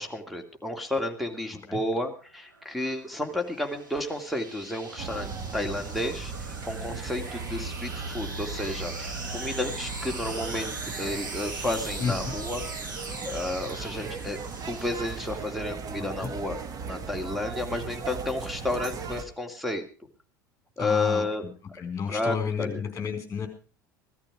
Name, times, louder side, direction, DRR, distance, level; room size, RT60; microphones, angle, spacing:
voice 1, 0.0-12.6 13.3-14.4 14.7-16.6 16.8-19.8 20.8-21.4 22.1-22.8, left 2 dB, ahead, 6 dB, 2.6 m, -31 dB
sound 1, 2.3-15.7, right 3 dB, 85° right, 2.7 m, -40 dB
sound 2, 5.0-19.2, right 5 dB, 35° right, 1.9 m, -37 dB
voice 2, 20.8-21.2 21.7-23.5, left 6 dB, 25° left, 5 dB, 4.3 m, -31 dB
16.0 x 13.5 x 4.9 m, 0.37 s
figure-of-eight pair, 75°, 10 cm